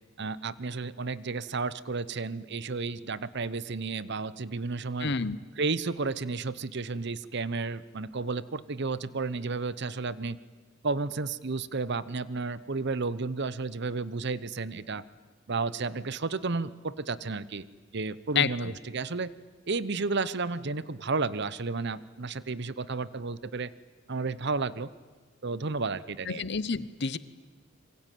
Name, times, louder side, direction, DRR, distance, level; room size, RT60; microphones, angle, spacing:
voice 1, 0.2-5.1 5.6-10.4 10.8-15.1 15.5-17.7 17.9-19.3 19.7-23.7 24.1-24.9 25.4-26.4, right 3 dB, 55° right, 17 dB, 0.9 m, -32 dB
voice 2, 5.0-5.4 18.3-18.7 26.3-27.2, left 5 dB, 60° left, 17 dB, 1.0 m, -29 dB
26.5 x 23.5 x 9.3 m, 1.4 s
head